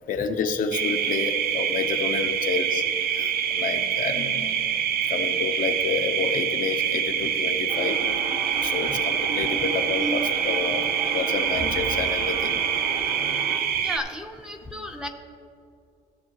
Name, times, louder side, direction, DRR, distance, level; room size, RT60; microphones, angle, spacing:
voice 1, 0.1-2.8 3.1-4.5 5.1-8.0 8.6-10.9 11.1-12.6 14.6-14.7, left 5 dB, 55° left, 5 dB, 0.7 m, -29 dB
sound 1, 0.7-14.0, right 8 dB, 65° right, 0.6 m, -26 dB
sound 2, 7.7-13.6, right 2 dB, 45° right, 1.6 m, -34 dB
voice 2, 13.8-15.1, left 1 dB, 5° right, 4 dB, 0.8 m, -34 dB
16.0 x 6.7 x 3.0 m, 2.5 s
cardioid pair, 110°, 17 cm